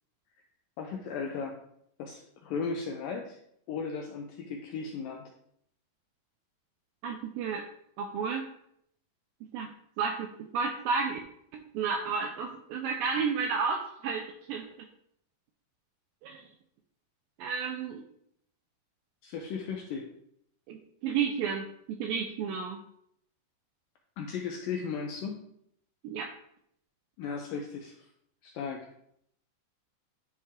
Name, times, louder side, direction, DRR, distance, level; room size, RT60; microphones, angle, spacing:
voice 1, 0.8-1.6 2.0-3.4 3.7-5.2 19.2-20.1 24.2-25.4 27.2-28.1 28.4-28.9, left 5 dB, 85° left, 2 dB, 2.0 m, -36 dB
voice 2, 7.0-7.7 8.0-8.5 9.5-9.7 10.0-11.2 11.7-14.7 16.2-16.5 17.4-18.0 20.7-22.8 26.0-26.3, right 5 dB, 85° right, 4 dB, 2.0 m, -32 dB
11.0 x 4.6 x 3.6 m, 0.71 s
omnidirectional pair, 4.7 m